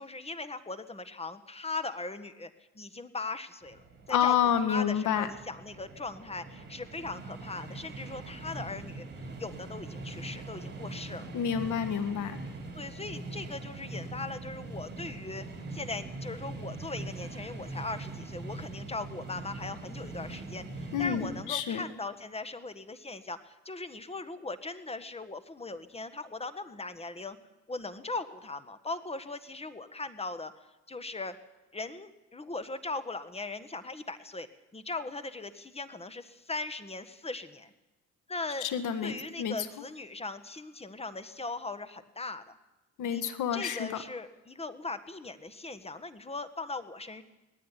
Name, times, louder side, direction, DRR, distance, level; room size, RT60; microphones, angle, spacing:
voice 1, 0.0-2.5 2.7-3.8 4.1-4.4 4.7-11.3 12.7-15.4 15.7-27.4 27.7-30.5 30.9-31.4 31.7-34.5 34.7-37.7 38.3-38.7 39.0-42.6 43.1-43.2 43.5-47.2, left 3 dB, 20° left, 11 dB, 1.6 m, -39 dB
sound 1, 3.6-21.4, right 2 dB, 35° right, 5.3 m, -42 dB
voice 2, 4.1-5.3 11.3-12.4 20.9-21.9 38.6-39.6 43.0-44.0, left 8 dB, 80° left, 10 dB, 1.9 m, -29 dB
19.0 x 14.5 x 10.0 m, 1.0 s
cardioid pair, 90°, 30 cm